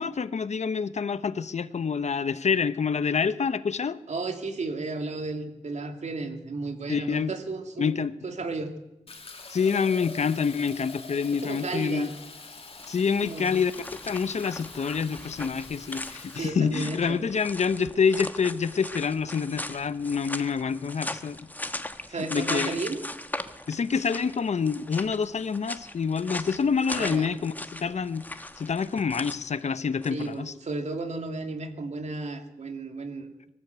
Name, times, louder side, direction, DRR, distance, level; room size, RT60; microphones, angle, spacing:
voice 1, 0.0-4.0 6.9-7.3 7.8-8.1 9.5-12.1 12.9-13.7 14.0-21.4 22.3-22.8 23.7-28.2 28.6-30.5, left 6 dB, 70° left, 14 dB, 0.9 m, -27 dB
voice 2, 4.1-7.9 8.2-8.7 11.4-12.1 13.2-13.5 16.3-17.2 22.1-23.0 26.9-27.3 30.1-33.3, right 3 dB, 70° right, 5 dB, 2.5 m, -33 dB
Fill (with liquid), 9.1-16.5, left 4 dB, 50° left, 2.4 m, -45 dB
sound 1, 12.7-30.3, left 1 dB, 15° left, 1.2 m, -39 dB
23.5 x 14.0 x 8.1 m, 0.93 s
wide cardioid pair, 95°, 12 cm